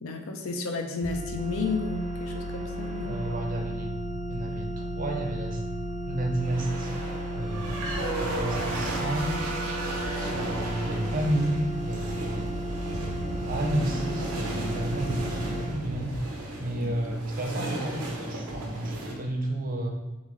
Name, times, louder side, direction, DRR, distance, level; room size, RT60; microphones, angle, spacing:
voice 1, 0.0-3.2 10.0-10.4 16.8-17.2, left 3 dB, 70° left, 4 dB, 0.5 m, -33 dB
sound 1, 1.0-15.7, right 1 dB, 40° left, 1.5 m, -34 dB
sound 2, 1.4-3.7 6.4-19.1, right 2 dB, 85° right, 0.7 m, -35 dB
voice 2, 3.0-3.9 4.3-5.6 6.1-7.0 7.3-9.5 10.3-12.5 13.5-16.1 16.6-19.9, right 1 dB, 40° right, 2 dB, 0.6 m, -31 dB
3.9 x 3.6 x 3.1 m, 1.1 s
head